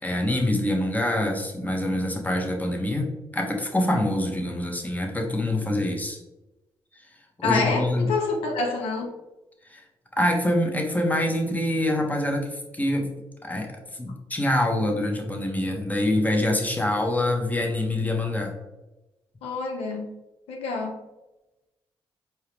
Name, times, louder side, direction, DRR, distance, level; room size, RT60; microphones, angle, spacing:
voice 1, 0.0-6.2 7.4-8.1 9.7-9.8 10.2-13.1 13.4-18.5, left 1 dB, 15° left, 1 dB, 1.1 m, -25 dB
voice 2, 7.4-9.1 19.4-20.1 20.5-20.9, left 3 dB, 85° left, 2 dB, 0.7 m, -27 dB
4.5 x 3.0 x 3.4 m, 1.0 s
supercardioid pair, 55°, 10 cm